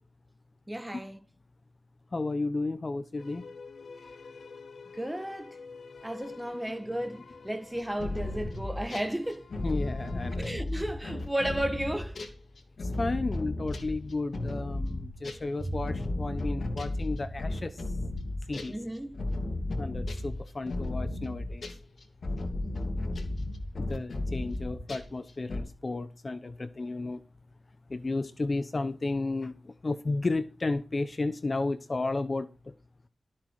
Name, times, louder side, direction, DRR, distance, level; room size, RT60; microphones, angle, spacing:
voice 1, 0.7-1.2 4.9-5.6 6.0-9.5 10.4-12.2 18.7-19.1, right 1 dB, 10° right, 1.8 m, -33 dB
voice 2, 2.1-3.4 9.6-10.5 13.0-17.8 18.5-18.7 19.8-21.7 23.8-27.2 27.9-32.5, left 3 dB, 35° left, 0.9 m, -33 dB
sound 1, 3.2-10.4, left 4 dB, 85° left, 3.1 m, -49 dB
sound 2, 7.8-9.1 9.5-15.4 15.8-25.2 25.5-25.6, left 2 dB, 65° left, 2.8 m, -34 dB
sound 3, 15.6-23.0, right 1 dB, 40° right, 2.7 m, -43 dB
13.5 x 7.4 x 4.9 m
wide cardioid pair, 100°, 0 cm